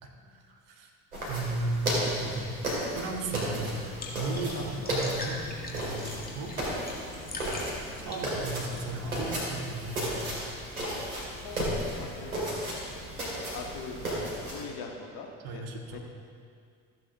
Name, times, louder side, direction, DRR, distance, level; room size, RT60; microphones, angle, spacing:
voice 1, 0.0-0.9 1.2-2.5 2.9-3.8 4.1-6.5 8.0-10.2 15.4-16.0, right 2 dB, 55° right, 2 dB, 1.5 m, -35 dB
sound 1, 1.1-14.6, right 1 dB, 85° right, 2.4 m, -34 dB
sound 2, 3.4-9.3, left 2 dB, 20° left, 2.0 m, -43 dB
voice 2, 4.5-4.9 11.4-12.4 13.5-14.0 14.5-15.6 15.9-16.0, left 5 dB, 50° left, 1 dB, 1.7 m, -42 dB
14.0 x 8.1 x 3.5 m, 2.2 s
figure-of-eight pair, 60°, 43 cm